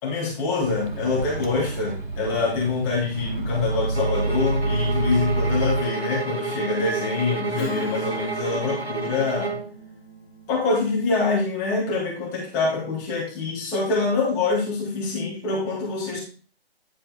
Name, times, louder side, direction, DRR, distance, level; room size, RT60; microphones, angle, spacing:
voice 1, 0.0-9.5 10.5-16.2, left 3 dB, 10° left, -5 dB, 1.6 m, -25 dB
Microwave oven, 0.6-5.8, right 3 dB, 50° right, 1.1 m, -28 dB
sound 1, 3.9-9.7, right 3 dB, 85° right, 1.5 m, -31 dB
Strum, 7.5-12.4, equal, 25° left, 2.7 m, -40 dB
9.7 x 4.4 x 4.0 m, 0.39 s
figure-of-eight pair, 145°, 31 cm